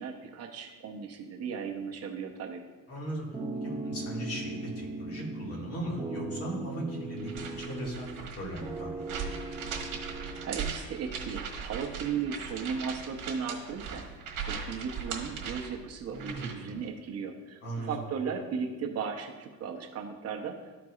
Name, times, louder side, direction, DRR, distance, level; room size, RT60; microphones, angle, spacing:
voice 1, 0.0-2.6 10.4-14.0 14.5-20.6, right 6 dB, 45° right, 2 dB, 0.7 m, -36 dB
voice 2, 2.9-3.3 3.6-9.3 16.1-16.8 17.6-17.9, right 1 dB, 45° left, -2 dB, 1.9 m, -38 dB
sound 1, 3.3-5.7 6.0-8.3 8.6-10.7, right 2 dB, 15° right, 0.5 m, -38 dB
sound 2, 7.2-16.7, right 6 dB, 65° right, 1.5 m, -39 dB
13.0 x 4.6 x 2.4 m, 1.3 s
cardioid pair, 145°, 34 cm